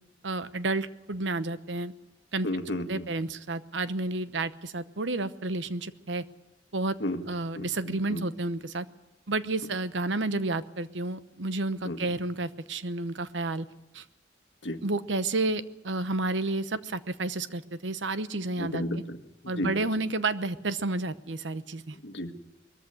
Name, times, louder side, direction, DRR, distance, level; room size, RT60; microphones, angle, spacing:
voice 1, 0.2-1.9 2.3-2.5 2.9-6.2 6.7-7.0 7.3-8.9 9.3-13.7 13.9-14.0 14.8-19.0 19.5-22.0, right 2 dB, 90° right, 13 dB, 1.0 m, -31 dB
voice 2, 2.4-3.1 7.0-7.2 7.6-8.2 11.8-12.0 14.6-14.8 18.6-19.2 19.4-19.7 22.0-22.5, left 1 dB, 75° left, 8 dB, 1.6 m, -33 dB
21.5 x 14.5 x 9.9 m, 0.95 s
head